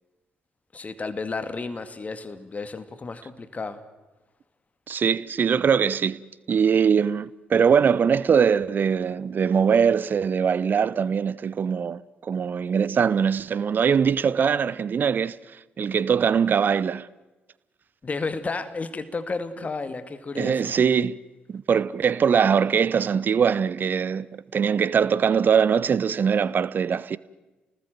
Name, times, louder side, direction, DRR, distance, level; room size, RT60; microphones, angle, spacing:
voice 1, 0.7-3.8 18.0-20.7, left 3 dB, 30° left, 2.2 m, -32 dB
voice 2, 4.9-6.2 6.5-15.4 15.8-17.1 20.4-21.2 21.5-24.3 24.5-27.2, right 7 dB, 45° right, 0.8 m, -22 dB
30.0 x 19.5 x 7.8 m
figure-of-eight pair, 40°, 5 cm